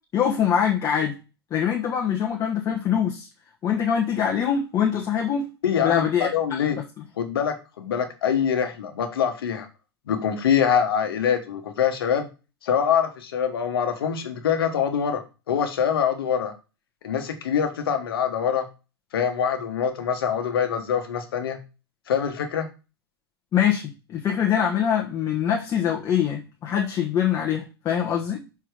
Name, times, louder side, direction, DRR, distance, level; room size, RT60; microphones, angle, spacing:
voice 1, 0.1-1.2 1.5-3.3 3.6-5.5 5.8-6.7 23.5-28.4, left 8 dB, 25° left, -1 dB, 1.3 m, -24 dB
voice 2, 5.6-6.8 7.2-9.7 10.1-12.3 12.6-16.5 17.0-18.7 19.1-21.6 22.1-22.7, left 8 dB, 65° left, 7 dB, 1.4 m, -24 dB
5.9 x 4.5 x 4.9 m, 0.30 s
figure-of-eight pair, 95°, 13 cm